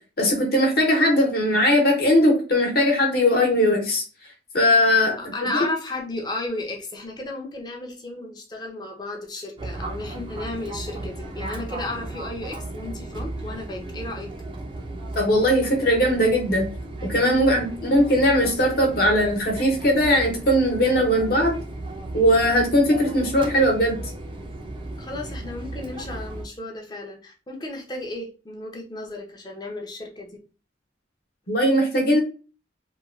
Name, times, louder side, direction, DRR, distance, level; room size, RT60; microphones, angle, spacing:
voice 1, 0.2-4.0 4.5-5.2 5.4-5.5 15.1-16.7 17.1-21.5 22.1-24.0 31.5-32.2, equal, 55° left, 1 dB, 0.9 m, -19 dB
voice 2, 5.2-14.3 17.7-17.9 25.0-30.4, left 2 dB, 25° left, 1 dB, 0.5 m, -34 dB
Fixed-wing aircraft airplane, 9.6-26.5, right 2 dB, 25° right, 0.4 m, -35 dB
2.9 x 2.2 x 2.4 m, 0.34 s
head